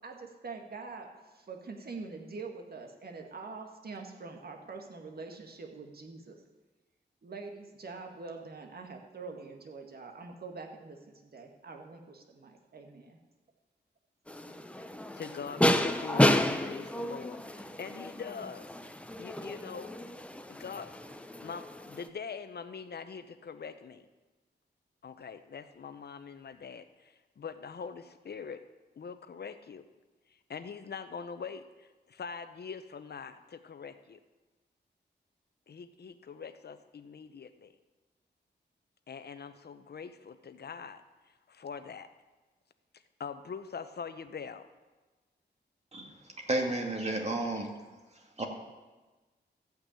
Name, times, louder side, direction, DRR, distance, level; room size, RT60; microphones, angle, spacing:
voice 1, 0.0-6.4 7.2-13.2, right 4 dB, 55° right, 3 dB, 1.8 m, -44 dB
sound 1, 14.3-22.1, left 1 dB, 5° left, 0.8 m, -31 dB
voice 2, 15.1-18.7 19.2-19.9 20.5-20.9 21.4-24.1 25.0-28.6 29.0-29.8 30.5-34.2 35.7-37.7 39.1-41.0 41.5-42.1 43.2-44.7, left 6 dB, 60° left, 10 dB, 0.9 m, -43 dB
voice 3, 46.4-47.7 48.4-48.5, right 2 dB, 35° right, 2 dB, 2.3 m, -31 dB
14.0 x 5.9 x 8.8 m, 1.2 s
wide cardioid pair, 85°, 18 cm